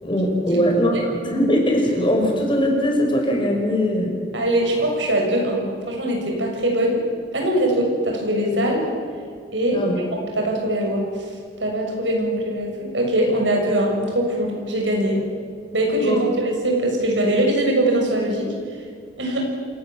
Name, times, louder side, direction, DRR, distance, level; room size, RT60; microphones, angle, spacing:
voice 1, 0.0-4.1 9.7-9.9 16.0-16.2, equal, 30° left, 1 dB, 5.2 m, -20 dB
voice 2, 4.3-7.0 7.3-8.9 9.5-11.1 11.6-15.2 15.7-18.5 19.2-19.4, right 1 dB, 90° right, 1 dB, 6.7 m, -22 dB
27.0 x 19.0 x 7.4 m, 2.2 s
head